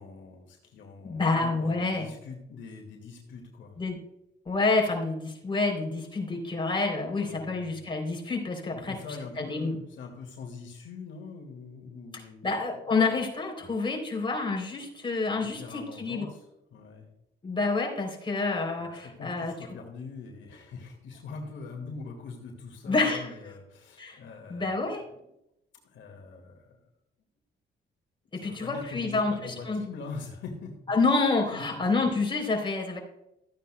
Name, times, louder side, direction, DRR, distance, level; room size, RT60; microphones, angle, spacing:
voice 1, 0.0-3.8 7.2-7.8 8.7-12.5 15.4-16.4 16.7-17.1 18.8-25.0 25.8-26.8 28.3-30.8 31.5-31.8, left 4 dB, 70° left, 1 dB, 2.0 m, -43 dB
voice 2, 1.0-2.1 3.8-4.0 4.4-9.0 9.4-9.8 12.1-16.3 17.4-19.5 22.9-23.3 24.0-24.2 24.5-25.0 28.3-29.8 30.9-33.0, left 3 dB, 25° left, 0 dB, 3.3 m, -28 dB
14.0 x 9.4 x 2.2 m, 0.83 s
cardioid pair, 90°, 20 cm